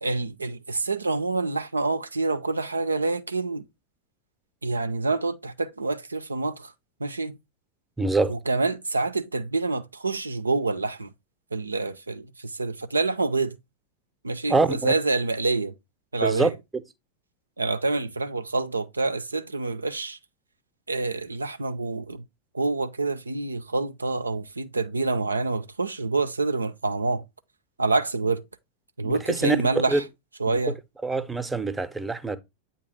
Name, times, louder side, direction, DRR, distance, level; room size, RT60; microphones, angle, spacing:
voice 1, 0.0-3.7 4.6-6.7 7.0-7.4 8.3-11.1 11.5-13.6 14.2-15.7 16.1-16.5 17.6-20.2 20.9-22.2 22.5-27.2 27.8-28.4 29.0-30.0 30.4-30.8, right 3 dB, 80° right, 0.4 m, -27 dB
voice 2, 8.0-8.3 14.5-14.9 16.2-16.5 29.0-29.6 29.9-30.0 30.5-30.6 31.0-32.4, right 3 dB, 10° right, 0.6 m, -24 dB
8.5 x 2.8 x 4.6 m
figure-of-eight pair, 90°, 0 cm